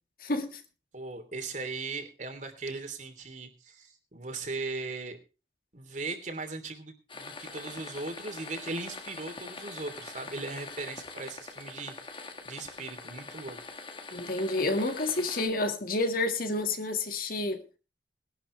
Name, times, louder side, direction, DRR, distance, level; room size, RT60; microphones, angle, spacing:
voice 1, 0.2-0.6 14.1-17.7, left 2 dB, 55° left, 1.9 m, -29 dB
voice 2, 0.9-5.2 5.7-13.6, right 3 dB, 45° right, 3.1 m, -38 dB
sound 1, 7.1-15.5, left 3 dB, 30° left, 1.8 m, -43 dB
20.5 x 12.0 x 3.3 m
head